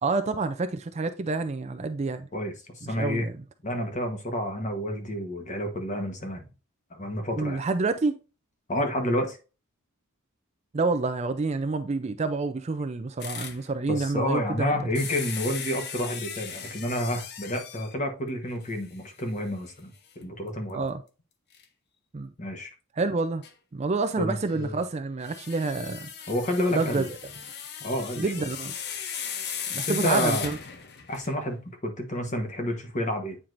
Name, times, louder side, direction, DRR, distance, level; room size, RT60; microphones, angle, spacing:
voice 1, 0.0-2.3 3.0-3.3 7.4-8.2 10.7-14.7 20.7-21.0 22.1-22.3 23.0-23.4 23.7-26.1 26.7-27.1 28.2-28.7 29.7-30.6, right 3 dB, 30° right, 0.4 m, -28 dB
voice 2, 2.3-3.3 3.6-6.4 6.9-7.7 8.7-9.4 13.9-20.8 22.4-22.7 24.2-24.8 26.3-27.1 27.8-28.5 29.7-30.5 31.1-33.4, left 1 dB, 35° left, 1.2 m, -30 dB
sound 1, 13.2-13.6 15.0-18.0 18.7-18.8 19.2-19.3 21.5-21.6 23.4-23.5 25.2-31.4, left 7 dB, 50° left, 0.7 m, -37 dB
8.7 x 4.6 x 2.5 m
head